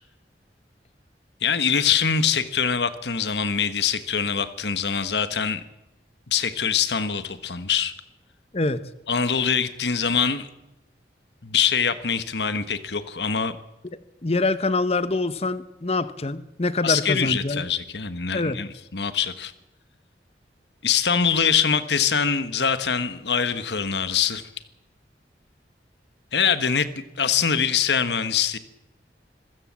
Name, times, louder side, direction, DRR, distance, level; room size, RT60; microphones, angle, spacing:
voice 1, 1.4-5.6 6.3-7.9 9.1-10.5 11.4-13.6 16.8-19.5 20.8-24.5 26.3-26.9 27.2-28.6, left 7 dB, 75° left, 1.4 m, -23 dB
voice 2, 8.5-8.9 14.2-17.6 18.3-18.6, left 3 dB, 35° left, 1.0 m, -25 dB
25.5 x 16.0 x 7.5 m
head